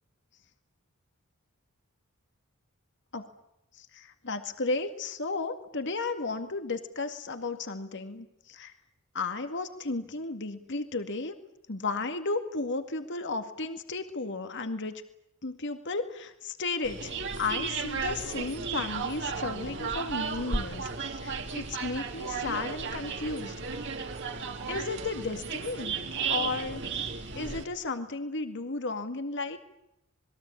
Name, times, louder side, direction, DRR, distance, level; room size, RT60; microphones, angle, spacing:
voice 1, 3.7-8.7 9.1-11.4 11.7-14.9 15.4-23.6 24.7-26.0 26.3-29.6, left 3 dB, 55° left, 8 dB, 2.1 m, -34 dB
sound 1, 16.8-27.6, right 5 dB, 55° right, 3.1 m, -34 dB
27.5 x 21.5 x 8.6 m, 0.83 s
head